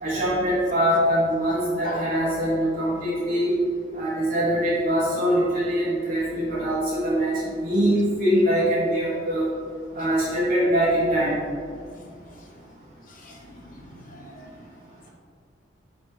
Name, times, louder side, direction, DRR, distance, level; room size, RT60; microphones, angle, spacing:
voice 1, 0.0-3.5 3.9-9.5 9.9-11.4, equal, 50° right, -11 dB, 1.4 m, -23 dB
voice 2, 13.1-14.7, left 2 dB, 45° left, 0 dB, 0.9 m, -40 dB
5.8 x 5.6 x 3.4 m, 2.2 s
head